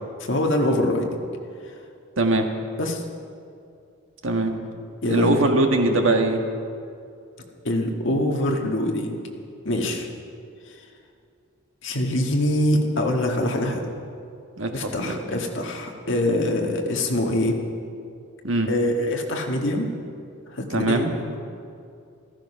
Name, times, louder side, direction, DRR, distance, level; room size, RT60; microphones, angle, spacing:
voice 1, 0.3-1.2 2.8-3.0 5.0-5.4 7.6-9.1 9.7-10.1 11.8-13.8 14.7-17.6 18.7-19.9 20.5-21.4, left 1 dB, 55° left, 1 dB, 1.8 m, -24 dB
voice 2, 2.2-2.5 4.2-4.5 5.0-6.4 14.6-15.2 18.4-18.7 20.7-21.1, right 2 dB, 60° right, 3 dB, 1.6 m, -21 dB
15.0 x 14.5 x 5.7 m, 2.5 s
head